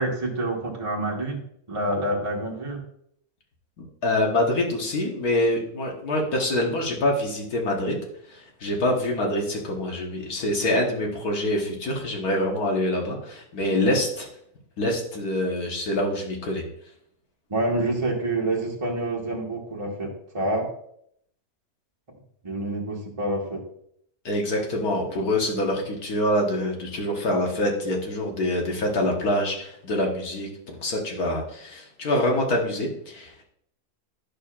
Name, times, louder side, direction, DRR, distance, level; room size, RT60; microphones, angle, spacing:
voice 1, 0.0-1.4 1.7-2.8 17.5-20.7 22.4-23.6, right 1 dB, 20° right, -2 dB, 1.3 m, -27 dB
voice 2, 3.8-8.0 8.3-14.3 14.8-16.6 24.3-33.4, left 1 dB, 80° left, 0 dB, 1.9 m, -25 dB
10.0 x 6.5 x 2.5 m, 0.69 s
omnidirectional pair, 1.6 m